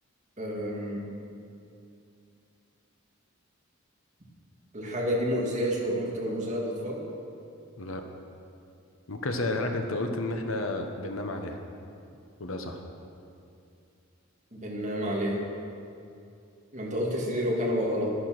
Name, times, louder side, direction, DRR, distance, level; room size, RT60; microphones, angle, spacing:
voice 1, 0.4-1.0 4.7-7.0 14.5-15.4 16.7-18.1, equal, 35° right, -3 dB, 2.5 m, -29 dB
voice 2, 9.1-11.6 12.4-12.8, left 2 dB, 70° left, 4 dB, 1.2 m, -31 dB
13.0 x 11.5 x 6.1 m, 2.6 s
head